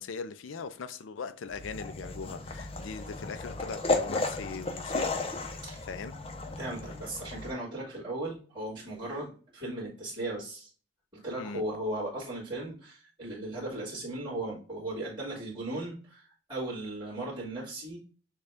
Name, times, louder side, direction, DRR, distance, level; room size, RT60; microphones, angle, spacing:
voice 1, 0.0-5.3 5.8-6.2 11.4-11.6, left 5 dB, 85° left, 0.4 m, -40 dB
sound 1, 1.5-7.5, left 3 dB, 30° left, 0.5 m, -34 dB
voice 2, 6.6-10.7 11.1-18.0, right 1 dB, 25° right, 2.1 m, -37 dB
6.5 x 2.3 x 3.4 m
head